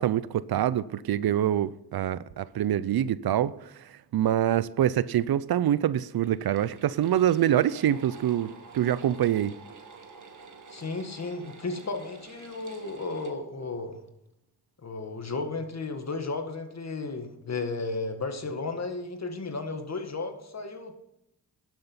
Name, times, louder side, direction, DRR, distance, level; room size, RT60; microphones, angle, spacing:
voice 1, 0.0-9.5, right 11 dB, 65° right, 0.6 m, -25 dB
sound 1, 6.2-13.3, right 4 dB, 50° right, 1.6 m, -49 dB
voice 2, 10.7-14.0 14.8-20.9, left 3 dB, 40° left, 1.9 m, -34 dB
11.0 x 7.9 x 5.7 m
cardioid pair, 65°, 40 cm